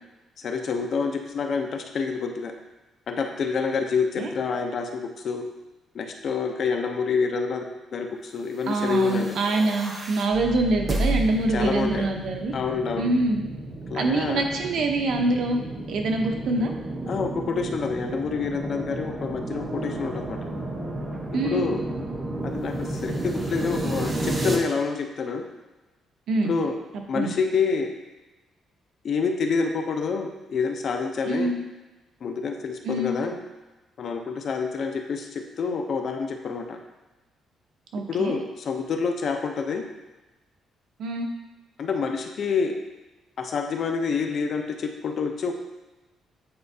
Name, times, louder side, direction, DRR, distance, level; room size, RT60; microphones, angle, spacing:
voice 1, 0.4-2.5 3.1-5.5 5.9-7.6 7.9-9.3 11.5-12.1 12.5-13.1 13.9-14.4 17.1-20.4 21.4-21.8 22.4-25.4 26.4-26.8 27.1-27.9 29.0-31.5 32.2-33.4 34.0-36.8 38.1-39.8 41.8-42.8 43.4-45.5, left 5 dB, 50° left, 4 dB, 0.6 m, -27 dB
voice 2, 8.7-12.5 13.0-13.4 13.9-15.6 15.9-16.7 21.3-21.7 26.3-26.5 27.1-27.3 31.3-31.5 32.8-33.1 37.9-38.3 41.0-41.3, right 2 dB, 65° right, 3 dB, 0.8 m, -25 dB
sound 1, 8.8-24.6, right 1 dB, 25° right, 0.8 m, -32 dB
8.6 x 4.3 x 2.7 m, 1.1 s
cardioid pair, 140°, 0 cm